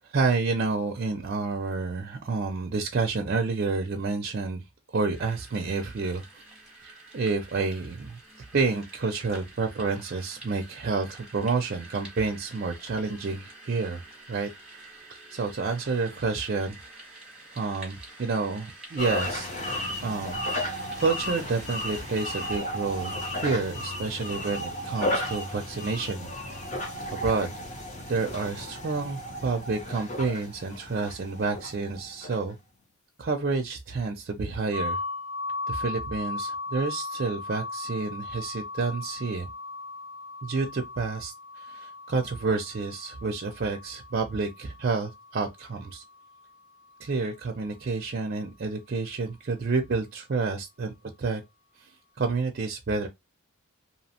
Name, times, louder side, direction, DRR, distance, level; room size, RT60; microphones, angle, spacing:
voice 1, 0.1-4.6 4.9-6.4 6.8-8.2 8.5-14.0 14.3-14.5 15.1-17.1 17.5-19.5 20.0-20.4 21.0-26.3 27.1-27.5 28.1-32.6 33.2-35.0 35.7-39.5 40.4-46.0 47.0-51.4 51.8-51.9 52.2-53.1, right 4 dB, 45° right, 0.4 m, -29 dB
sound 1, 5.1-22.6, right 2 dB, 5° right, 0.9 m, -48 dB
sound 2, 19.0-32.5, left 1 dB, 35° left, 0.6 m, -34 dB
sound 3, 34.7-46.5, left 3 dB, 65° left, 1.0 m, -38 dB
2.8 x 2.0 x 2.7 m
head